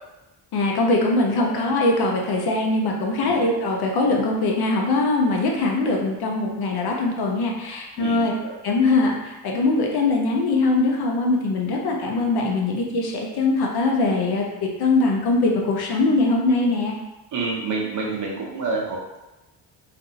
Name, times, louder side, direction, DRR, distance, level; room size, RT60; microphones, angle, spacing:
voice 1, 0.5-8.3 8.6-16.9, left 2 dB, 55° left, 0 dB, 0.7 m, -22 dB
voice 2, 8.0-8.5 17.3-19.2, right 3 dB, 40° right, -1 dB, 0.7 m, -28 dB
2.5 x 2.4 x 3.9 m, 1.0 s
cardioid pair, 115°, 45 cm